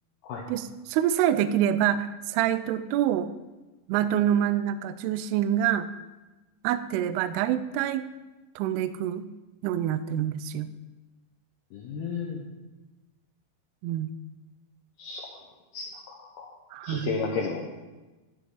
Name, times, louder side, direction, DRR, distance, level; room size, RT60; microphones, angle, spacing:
voice 1, 0.5-3.3 3.9-5.9 6.6-8.0 8.6-9.3 9.6-10.7 13.8-14.1 16.7-17.2, right 10 dB, 85° right, 12 dB, 2.3 m, -26 dB
voice 2, 11.7-12.4 15.0-15.3 15.7-16.5 16.8-17.6, left 5 dB, 70° left, -1 dB, 2.7 m, -33 dB
13.0 x 11.0 x 4.0 m, 1.2 s
omnidirectional pair, 5.2 m